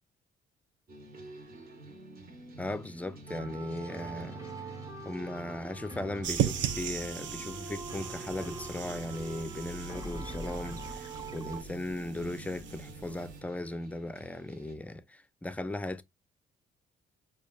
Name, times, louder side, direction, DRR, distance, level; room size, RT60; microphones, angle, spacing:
sound 1, 0.9-14.8, right 1 dB, 50° right, 1.0 m, -49 dB
voice 1, 2.6-4.4 5.0-16.0, left 1 dB, 5° left, 0.4 m, -37 dB
sound 2, 3.3-11.6, right 3 dB, 15° right, 0.9 m, -44 dB
sound 3, 6.2-13.4, right 9 dB, 70° right, 0.5 m, -37 dB
5.1 x 2.3 x 2.3 m
cardioid pair, 90°, 20 cm